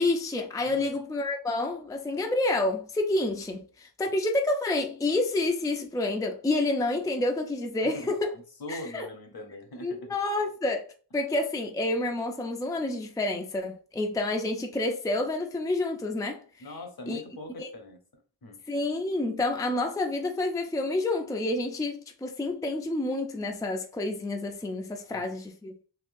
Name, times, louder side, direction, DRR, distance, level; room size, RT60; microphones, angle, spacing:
voice 1, 0.0-8.3 8.7-9.1 9.8-10.9 11.1-16.4 17.1-17.2 17.6-17.7 18.7-25.7, left 2 dB, 10° left, 0.4 m, -29 dB
voice 2, 7.8-10.1 16.6-18.6 25.0-25.3, left 1 dB, 60° left, 0.9 m, -42 dB
3.6 x 2.8 x 2.5 m
wide cardioid pair, 80°, 41 cm